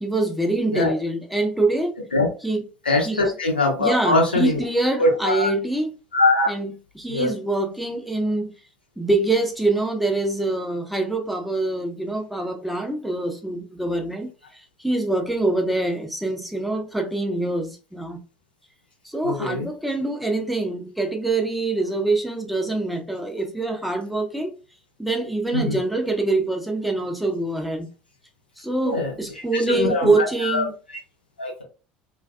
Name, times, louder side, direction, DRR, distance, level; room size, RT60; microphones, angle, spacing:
voice 1, 0.0-2.0 2.4-2.6 3.0-3.2 3.8-5.9 6.5-8.5 9.0-18.2 19.0-24.5 25.0-27.9 28.6-30.7, right 2 dB, ahead, 0.6 m, -25 dB
voice 2, 2.8-4.6 5.0-5.5 6.1-6.5 7.1-7.3 19.2-19.6 25.5-25.8 28.8-29.1 29.5-30.7 31.4-31.6, left 2 dB, 85° left, 0.8 m, -22 dB
2.4 x 2.4 x 2.2 m
figure-of-eight pair, 65°, 5 cm